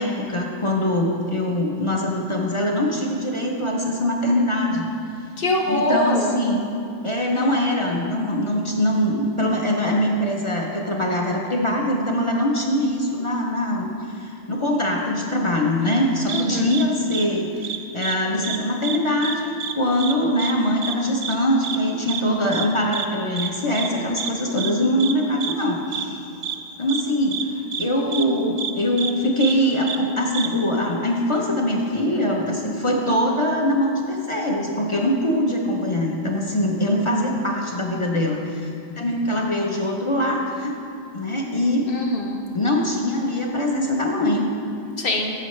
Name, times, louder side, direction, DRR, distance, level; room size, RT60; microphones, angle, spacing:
voice 1, 0.0-4.9 5.7-6.6 7.0-26.2 26.8-40.8 41.1-41.9 42.5-44.5, left 1 dB, 35° left, -1 dB, 0.6 m, -23 dB
voice 2, 5.4-6.4 16.3-16.8 41.9-42.4 45.0-45.3, left 1 dB, 50° left, 1 dB, 1.0 m, -23 dB
sound 1, 16.3-16.4 16.7-16.8 17.1-17.2 17.6-18.2 18.4-18.6 18.8-19.3 19.6-19.7 20.0-20.1 20.4-20.5 20.8-20.9 21.2-21.3 21.6-21.8 22.1-22.2 22.5-22.7 22.9-23.1 23.4-23.5 23.7-23.9 24.2-24.3 24.6-24.7 25.0-25.1 25.4-25.5 25.9-26.0 26.4-26.6 26.9-27.0 27.3-27.4 27.7-27.8 28.1-28.2 28.6-28.7 29.0-29.1 29.4-29.5 29.9-30.0 30.3-30.5, right 8 dB, 90° right, 1.0 m, -28 dB
13.5 x 5.5 x 3.2 m, 2.7 s
omnidirectional pair, 1.3 m